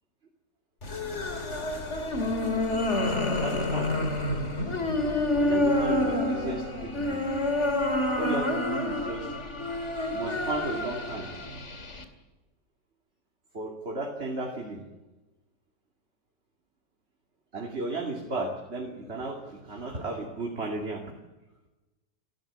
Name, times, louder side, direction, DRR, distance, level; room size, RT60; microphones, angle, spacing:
sound 1, 0.8-12.0, left 1 dB, 45° left, 2.7 m, -28 dB
voice 1, 3.3-3.9 5.3-7.2 8.1-9.3 10.1-11.3 13.5-14.8 17.5-21.0, right 2 dB, 40° right, 0 dB, 2.8 m, -34 dB
29.5 x 12.5 x 8.9 m, 1.1 s
omnidirectional pair, 1.8 m